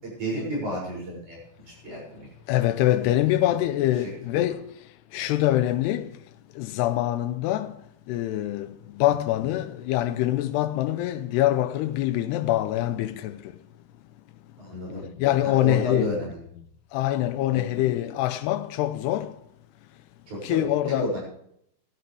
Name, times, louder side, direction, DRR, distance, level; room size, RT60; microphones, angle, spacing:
voice 1, 0.0-1.4 1.8-2.3 3.0-3.1 14.6-15.0 15.4-16.4 17.5-17.8 20.3-20.6 21.0-21.2, right 1 dB, 45° right, 8.2 m, -32 dB
voice 2, 2.5-4.6 5.1-6.0 6.6-7.7 8.1-8.7 9.0-13.4 15.2-16.1 16.9-19.3 20.4-21.1, left 14 dB, 85° left, 2.8 m, -24 dB
16.0 x 14.5 x 3.5 m
omnidirectional pair, 4.8 m